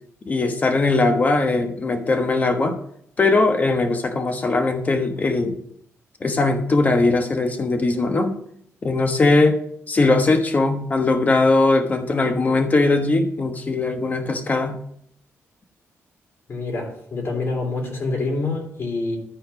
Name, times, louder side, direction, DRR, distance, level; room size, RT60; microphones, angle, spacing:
voice 1, 0.2-2.8 3.2-5.6 6.2-8.4 8.8-9.6 9.9-14.8, left 3 dB, 30° left, 5 dB, 1.2 m, -20 dB
voice 2, 16.5-19.2, left 3 dB, 55° left, -1 dB, 3.2 m, -26 dB
13.5 x 4.5 x 5.8 m, 0.69 s
wide cardioid pair, 135°, 5 cm